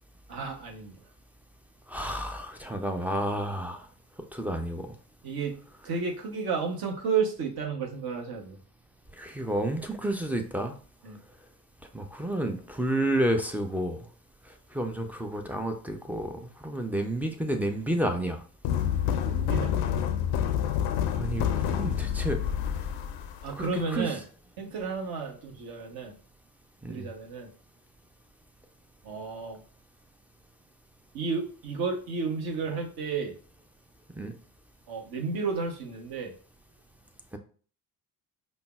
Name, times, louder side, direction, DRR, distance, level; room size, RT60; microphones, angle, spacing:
voice 1, 0.3-1.0 5.2-5.6 5.8-8.6 11.0-11.2 19.1-19.8 23.4-24.2 24.6-26.1 26.9-27.5 29.0-29.6 31.1-33.3 34.9-36.3, right 5 dB, 50° right, 2 dB, 1.0 m, -32 dB
voice 2, 1.9-3.8 4.3-4.8 9.2-10.7 11.9-14.0 14.7-18.4 21.2-22.4 23.6-24.1 26.8-27.1 34.2-34.3 37.3-37.4, right 1 dB, 5° right, 5 dB, 0.4 m, -30 dB
sound 1, 18.6-23.8, left 9 dB, 60° left, 0.5 m, -28 dB
5.2 x 2.0 x 2.3 m, 0.42 s
figure-of-eight pair, 50°, 47 cm